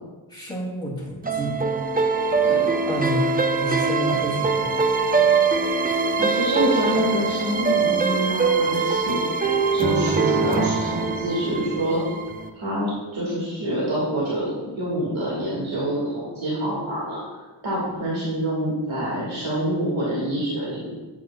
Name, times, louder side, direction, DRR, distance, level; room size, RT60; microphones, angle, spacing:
voice 1, 0.3-1.6 2.9-3.3 3.6-4.7, equal, 10° left, -5 dB, 2.4 m, -29 dB
sound 1, 1.2-12.5, right 4 dB, 20° right, 0.5 m, -22 dB
voice 2, 2.4-2.8 6.2-9.2 9.7-12.0 12.5-17.2 17.6-21.0, right 1 dB, 70° right, -6 dB, 2.0 m, -26 dB
8.4 x 8.1 x 2.3 m, 1.2 s
wide cardioid pair, 75°, 49 cm